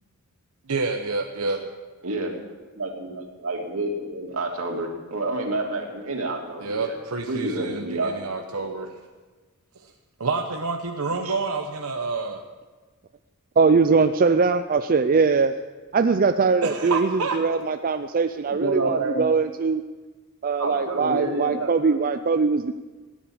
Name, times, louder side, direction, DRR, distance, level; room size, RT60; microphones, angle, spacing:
voice 1, 0.7-1.7 6.6-7.8 8.2-8.8 10.2-12.4 16.7-17.3, right 3 dB, 85° right, 3 dB, 1.0 m, -28 dB
voice 2, 2.0-2.3 2.7-7.0 7.3-8.9 11.1-11.3 18.5-19.2 20.6-22.0, right 2 dB, 70° right, 1 dB, 2.8 m, -29 dB
voice 3, 13.6-15.5 15.9-19.8 20.4-22.7, right 4 dB, 40° right, 8 dB, 0.5 m, -21 dB
17.0 x 10.0 x 7.3 m, 1.3 s
head